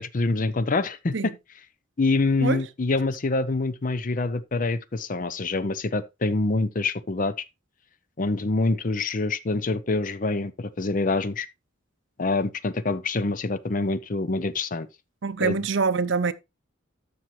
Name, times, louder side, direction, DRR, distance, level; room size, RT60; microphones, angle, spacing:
voice 1, 0.0-1.3 2.0-7.3 8.2-11.5 12.2-14.9 15.4-15.6, left 3 dB, 40° left, 0.6 m, -26 dB
voice 2, 15.2-16.3, right 4 dB, 65° right, 0.6 m, -24 dB
13.0 x 5.6 x 3.1 m
head